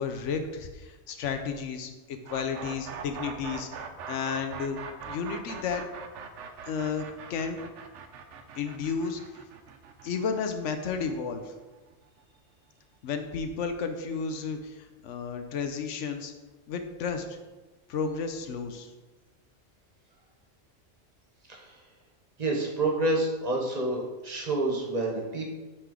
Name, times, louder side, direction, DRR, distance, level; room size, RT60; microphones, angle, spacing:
voice 1, 0.0-3.7 4.1-5.8 6.7-7.6 8.6-9.2 10.0-11.5 13.0-16.3 16.7-17.4 17.9-18.9, left 5 dB, 75° left, 7 dB, 1.0 m, -32 dB
sound 1, 2.2-12.1, right 6 dB, 75° right, 0.9 m, -42 dB
voice 2, 22.4-25.5, right 2 dB, 35° right, -1 dB, 1.1 m, -28 dB
8.8 x 3.3 x 3.7 m, 1.2 s
omnidirectional pair, 1.3 m